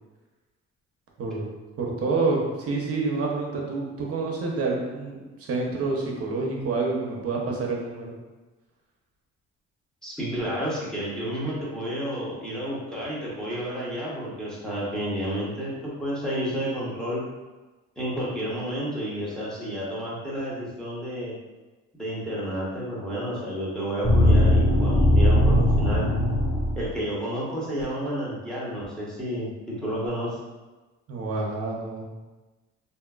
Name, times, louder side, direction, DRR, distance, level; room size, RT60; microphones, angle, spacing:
voice 1, 1.8-8.1 31.1-32.0, right 3 dB, 50° right, -2 dB, 0.7 m, -28 dB
voice 2, 10.0-17.2 18.0-21.3 21.9-26.1 26.8-30.4, equal, ahead, -8 dB, 1.0 m, -31 dB
sound 1, 24.0-26.9, left 1 dB, 55° left, 1.4 m, -19 dB
2.8 x 2.5 x 2.4 m, 1.2 s
cardioid pair, 90°, 30 cm